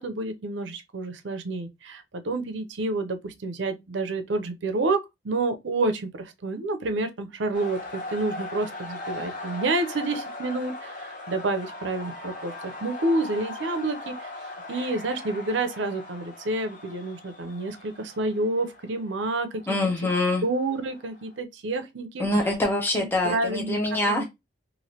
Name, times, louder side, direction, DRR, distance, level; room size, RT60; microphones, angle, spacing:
voice 1, 0.0-14.3 14.7-19.7 20.4-22.3 22.9-23.8 24.0-24.2, right 2 dB, 75° right, 0.6 m, -29 dB
sound 1, 7.5-21.3, left 2 dB, 45° left, 0.8 m, -39 dB
voice 2, 19.7-20.4 22.2-24.2, left 1 dB, 10° left, 0.6 m, -25 dB
3.1 x 2.5 x 2.8 m
head